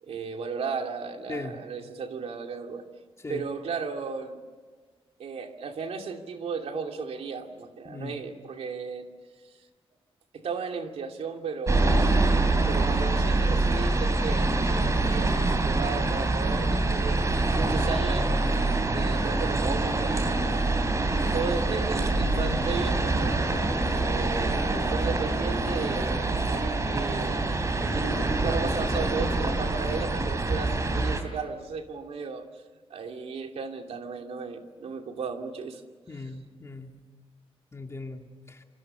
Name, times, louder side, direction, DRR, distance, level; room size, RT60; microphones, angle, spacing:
voice 1, 0.0-2.8 3.3-4.4 5.2-9.1 10.3-12.1 12.7-17.2 17.5-18.3 18.9-20.6 21.3-23.4 24.0-27.5 27.8-32.4 32.9-35.8 36.1-36.3, right 5 dB, 85° right, 4 dB, 2.7 m, -35 dB
voice 2, 7.8-8.2 21.1-21.4 36.1-36.9 37.7-38.2 38.5-38.6, left 3 dB, 25° left, 3 dB, 2.6 m, -38 dB
sound 1, 11.7-31.2, right 2 dB, 30° right, 3.3 m, -25 dB
27.5 x 26.0 x 6.8 m, 1.5 s
wide cardioid pair, 145°, 10 cm